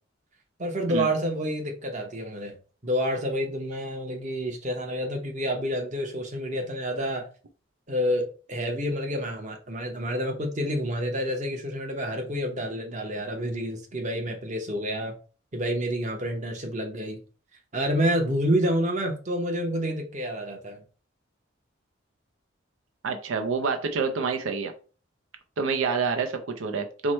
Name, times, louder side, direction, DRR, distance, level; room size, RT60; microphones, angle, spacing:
voice 1, 0.6-2.6 2.8-7.3 7.9-15.1 15.5-17.2 17.7-20.8, equal, 40° right, 0.8 m, -28 dB
voice 2, 23.0-24.7 25.6-27.1, right 4 dB, 90° right, 0.5 m, -27 dB
4.6 x 2.1 x 4.2 m
head